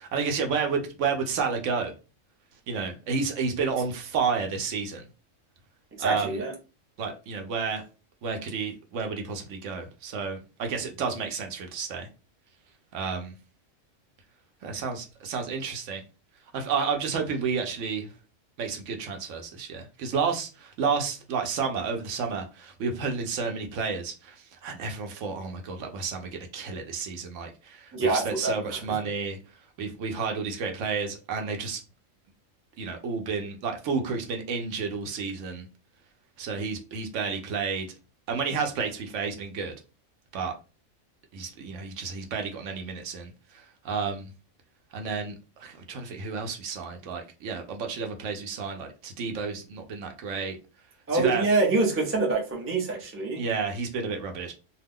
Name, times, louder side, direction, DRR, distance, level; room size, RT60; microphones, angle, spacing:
voice 1, 0.0-1.9 2.7-5.0 6.0-6.4 7.0-7.8 8.2-12.1 12.9-13.3 14.6-16.0 16.5-18.1 18.6-29.4 29.8-31.8 32.8-35.7 36.4-37.9 38.3-39.7 40.3-40.5 41.3-44.3 44.9-45.3 45.6-50.6 51.1-51.4 53.4-54.5, right 5 dB, 70° right, 0.9 m, -31 dB
voice 2, 6.0-6.5 27.9-28.8 51.1-53.4, right 3 dB, 15° right, 0.4 m, -25 dB
2.4 x 2.2 x 3.4 m
omnidirectional pair, 1.4 m